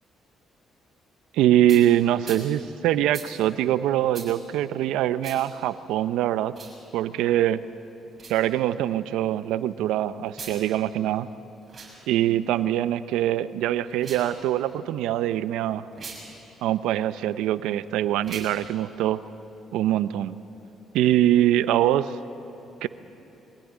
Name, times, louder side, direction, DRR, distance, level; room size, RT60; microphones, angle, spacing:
voice 1, 1.3-6.5 6.9-7.6 8.3-11.3 12.1-15.9 16.6-19.2 19.7-20.4 20.9-22.1 22.8-22.9, right 12 dB, 90° right, 14 dB, 0.7 m, -23 dB
sound 1, 1.7-1.8 2.2-2.4 3.1-3.3 4.1-4.3 5.2-5.4 6.5-6.8 8.1-8.4 10.3-10.6 11.6-11.9 13.9-14.3 15.9-16.2 18.2-18.5, right 4 dB, 35° right, 6.7 m, -40 dB
23.5 x 15.5 x 10.0 m, 3.0 s
cardioid pair, 95°, 0 cm